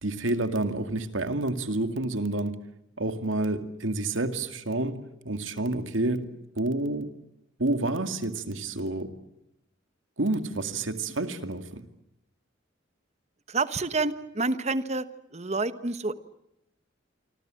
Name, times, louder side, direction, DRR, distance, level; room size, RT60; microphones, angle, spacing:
voice 1, 0.0-2.5 3.0-6.3 6.6-7.1 7.6-9.1 10.2-11.8, right 2 dB, 90° right, 8 dB, 2.2 m, -29 dB
voice 2, 13.5-15.1 15.3-16.2, right 3 dB, 35° right, 13 dB, 1.1 m, -28 dB
26.5 x 26.0 x 7.7 m, 0.85 s
head